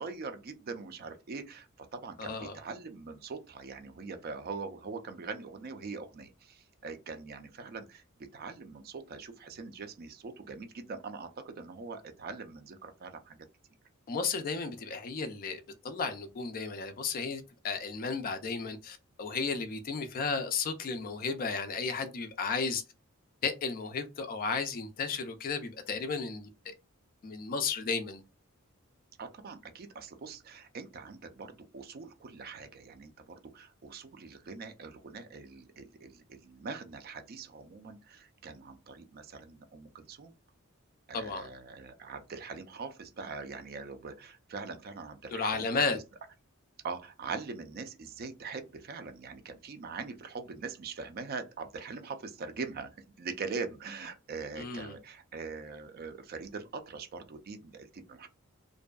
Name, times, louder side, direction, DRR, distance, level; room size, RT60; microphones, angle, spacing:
voice 1, 0.0-8.0 8.3-13.5 29.2-40.3 41.1-46.0 46.8-52.9 53.2-58.3, right 4 dB, 45° right, 0.4 m, -42 dB
voice 2, 2.2-2.5 14.1-22.8 23.4-26.7 27.2-28.2 41.1-41.5 45.3-46.0 54.6-54.9, left 4 dB, 40° left, 0.3 m, -34 dB
2.6 x 2.3 x 2.2 m
head